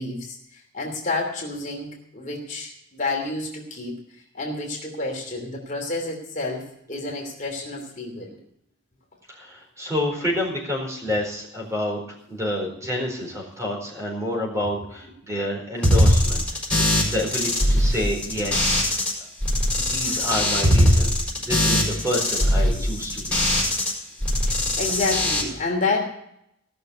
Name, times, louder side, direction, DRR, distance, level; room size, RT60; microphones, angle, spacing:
voice 1, 0.0-4.0 4.3-8.4 16.8-17.0 24.4-26.0, left 3 dB, 40° left, -1 dB, 3.0 m, -29 dB
voice 2, 9.3-12.0 12.3-16.5 16.7-16.8 17.1-18.8 19.8-23.4, left 1 dB, 15° right, -1 dB, 4.3 m, -28 dB
sound 1, 15.8-19.1 19.4-23.9 24.2-25.4, left 1 dB, 5° left, 4.7 m, -21 dB
17.5 x 6.7 x 8.0 m, 0.75 s
head